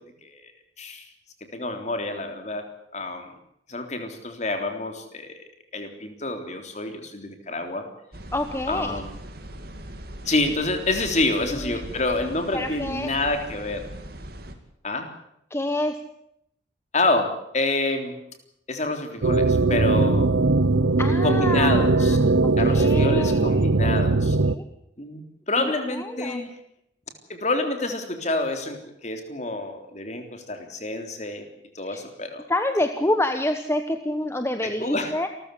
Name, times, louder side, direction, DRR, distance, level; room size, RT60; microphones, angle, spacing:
voice 1, 1.5-2.7 2.9-3.3 3.7-5.4 5.7-7.9 8.7-9.2 10.3-13.8 14.8-15.1 16.9-18.2 18.7-20.3 21.2-22.2 22.6-24.4 25.0-25.2 25.5-26.5 27.3-31.5 31.8-32.4 34.6-35.1, left 2 dB, 35° left, 6 dB, 3.6 m, -27 dB
sound 1, 8.1-14.5, right 1 dB, 50° right, 2.7 m, -40 dB
voice 2, 8.3-9.0 11.5-11.8 12.5-13.1 15.5-16.0 21.0-23.7 24.1-24.7 25.6-26.5 31.8-32.0 32.5-35.3, left 1 dB, 15° left, 8 dB, 1.1 m, -28 dB
sound 2, 19.2-24.6, right 3 dB, 75° right, 0.9 m, -20 dB
28.0 x 14.5 x 8.4 m, 0.76 s
head